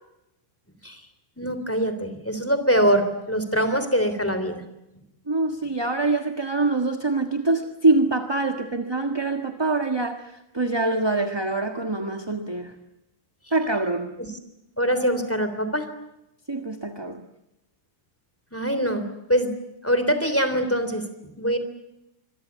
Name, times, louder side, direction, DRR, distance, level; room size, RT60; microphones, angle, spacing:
voice 1, 1.4-4.6 14.2-14.3 14.8-15.9 18.5-19.5 19.8-21.6, equal, 5° left, 10 dB, 3.3 m, -23 dB
voice 2, 5.3-10.2 10.5-12.7 13.5-14.1 16.5-17.2, right 2 dB, 15° right, 7 dB, 1.2 m, -24 dB
26.0 x 23.0 x 8.2 m, 0.88 s
omnidirectional pair, 2.4 m